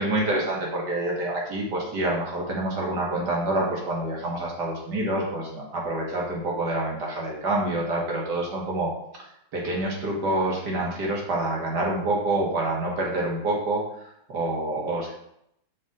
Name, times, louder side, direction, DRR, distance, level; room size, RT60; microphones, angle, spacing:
voice 1, 0.0-15.1, right 2 dB, 65° right, -2 dB, 2.1 m, -27 dB
5.7 x 4.7 x 3.7 m, 0.75 s
omnidirectional pair, 1.9 m